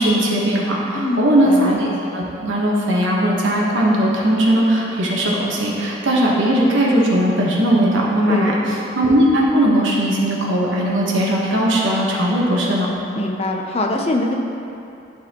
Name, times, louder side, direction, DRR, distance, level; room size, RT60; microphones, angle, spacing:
voice 1, 0.0-8.6 8.9-12.9, right 1 dB, 80° right, -4 dB, 1.2 m, -18 dB
voice 2, 0.9-1.6 8.3-8.5 13.2-14.3, left 2 dB, 30° left, 1 dB, 0.5 m, -23 dB
11.5 x 4.2 x 2.9 m, 2.8 s
head